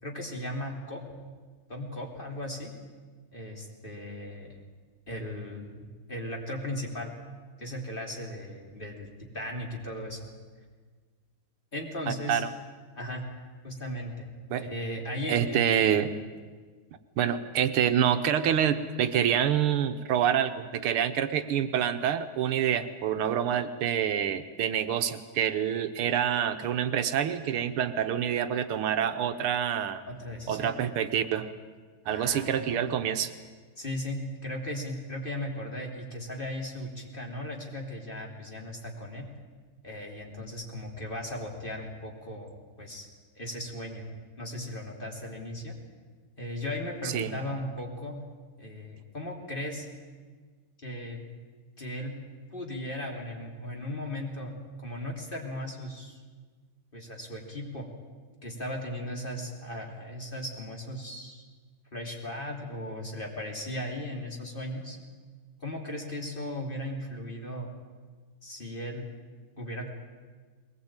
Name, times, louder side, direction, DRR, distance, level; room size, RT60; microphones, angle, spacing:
voice 1, 0.0-1.0 1.7-2.7 3.3-4.6 5.1-7.1 7.6-9.1 9.3-10.3 11.7-12.4 12.9-13.2 13.6-14.3 14.6-15.6 30.1-30.7 32.0-32.8 33.8-39.3 39.8-42.5 42.8-43.1 43.3-44.1 44.4-45.7 46.4-48.2 48.6-49.9 50.8-51.2 51.8-52.1 52.5-54.5 54.8-56.2 56.9-57.9 58.4-61.4 61.9-65.0 65.6-67.7 68.4-69.0 69.6-69.9, left 1 dB, 25° left, 0 dB, 3.3 m, -37 dB
voice 2, 12.1-12.5 14.5-14.7 15.3-16.2 17.2-30.0 30.5-31.5 32.1-33.3 47.1-47.3, right 9 dB, 80° right, 9 dB, 1.8 m, -27 dB
21.5 x 19.5 x 8.9 m, 1.5 s
omnidirectional pair, 2.4 m